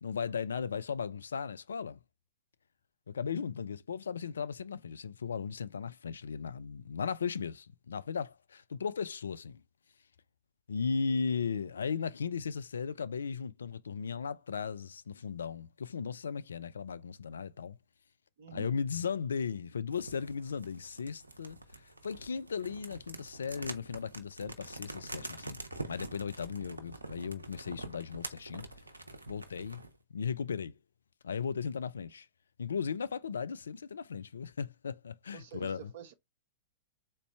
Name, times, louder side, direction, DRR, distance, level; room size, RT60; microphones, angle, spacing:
voice 1, 0.0-2.0 3.1-9.6 10.7-17.8 18.5-25.6 25.9-28.6 29.3-29.8 30.1-30.8 31.2-32.3 32.6-35.9, left 6 dB, 75° left, 0.3 m, -36 dB
voice 2, 18.4-18.8 35.3-36.1, right 9 dB, 55° right, 0.9 m, -48 dB
sound 1, 19.9-29.9, right 2 dB, 85° right, 0.7 m, -46 dB
3.8 x 3.2 x 3.2 m
figure-of-eight pair, 100°, 0 cm